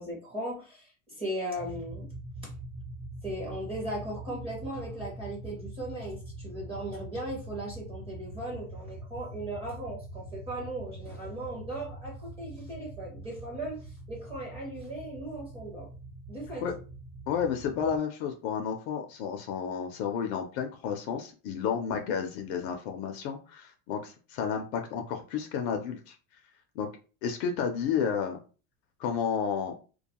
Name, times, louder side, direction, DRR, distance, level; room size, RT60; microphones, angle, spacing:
voice 1, 0.0-2.1 2.4-2.5 3.2-15.9 16.3-16.6, right 1 dB, 15° right, -2 dB, 0.5 m, -38 dB
sound 1, 1.6-18.0, right 2 dB, 60° right, 0.8 m, -43 dB
voice 2, 17.3-26.2 26.8-26.9 27.2-28.4 29.0-29.7, left 7 dB, 55° left, 5 dB, 0.4 m, -31 dB
2.3 x 2.2 x 2.8 m, 0.36 s
supercardioid pair, 155°, 41 cm